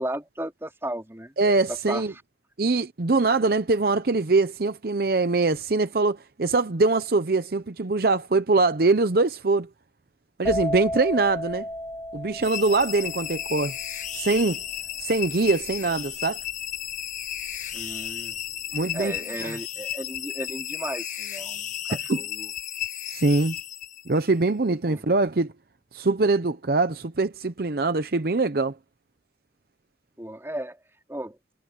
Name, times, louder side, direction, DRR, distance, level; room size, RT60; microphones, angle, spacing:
voice 1, 0.0-1.4 1.7-2.2 17.7-18.4 18.9-22.5 24.9-25.0 30.2-30.8 31.1-31.4, right 1 dB, 15° right, 3.3 m, -35 dB
voice 2, 1.4-2.1 2.6-9.7 10.4-11.7 12.1-13.8 14.1-14.6 15.0-16.4 18.7-19.1 19.4-19.6 22.1-22.2 23.1-23.6 24.1-25.5 25.9-28.7, right 3 dB, 55° right, 0.7 m, -23 dB
sound 1, 10.5-18.0 18.3-18.8, equal, 15° left, 4.5 m, -34 dB
sound 2, 12.4-24.3, left 11 dB, 45° left, 1.2 m, -34 dB
head